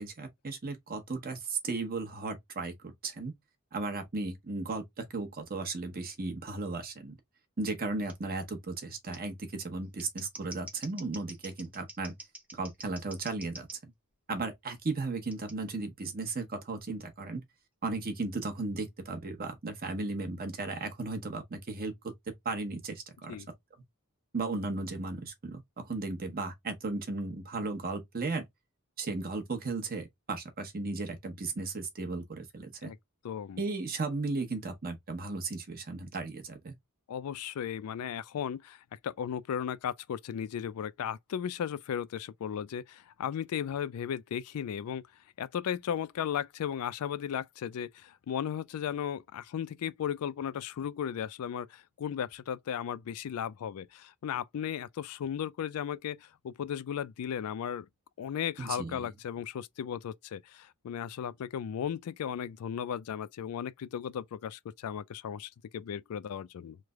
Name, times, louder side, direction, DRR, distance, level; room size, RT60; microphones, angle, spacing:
voice 1, 0.0-3.3 3.7-7.2 7.6-12.2 12.5-13.9 14.3-17.4 17.8-23.4 24.3-28.5 29.0-32.9 33.6-36.7 58.6-59.0, right 3 dB, 40° right, 0.8 m, -35 dB
Scissors, 8.1-8.2 9.1-9.2 9.8-13.8 15.3-15.5, right 1 dB, 5° right, 0.8 m, -47 dB
voice 2, 33.2-33.6 37.1-45.0 45.4-57.9 58.2-66.8, left 8 dB, 80° left, 0.3 m, -36 dB
3.2 x 2.1 x 3.5 m
head